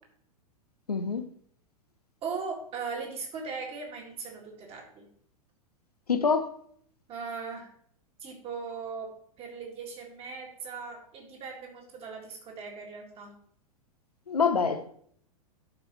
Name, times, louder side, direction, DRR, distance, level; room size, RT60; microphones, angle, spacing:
voice 1, 0.9-1.2 6.1-6.5 14.3-14.9, left 5 dB, 80° left, 0.7 m, -25 dB
voice 2, 2.2-5.1 7.1-7.7 8.2-13.3, right 5 dB, 30° right, 2.0 m, -39 dB
11.5 x 4.7 x 3.1 m
figure-of-eight pair, 95°, 19 cm